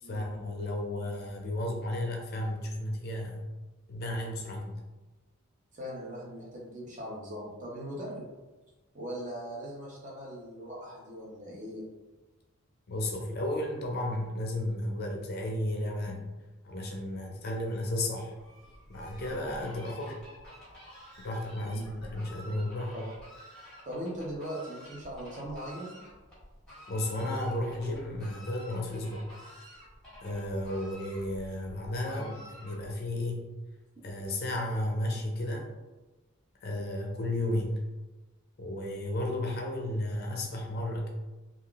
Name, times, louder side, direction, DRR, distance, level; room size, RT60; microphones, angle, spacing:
voice 1, 0.0-3.5 3.9-4.8 12.9-16.3 16.6-18.3 18.9-20.2 21.2-22.9 26.9-29.3 30.2-33.5 34.0-35.7 36.6-37.8 38.6-41.1, left 1 dB, 45° left, 1 dB, 0.4 m, -33 dB
voice 2, 5.7-8.3 8.9-11.8 21.6-22.1 22.9-23.0 23.8-25.9, equal, 35° right, -4 dB, 0.7 m, -40 dB
Fowl, 18.3-33.1, equal, 5° left, 1.1 m, -50 dB
3.4 x 2.3 x 2.3 m, 1.1 s
head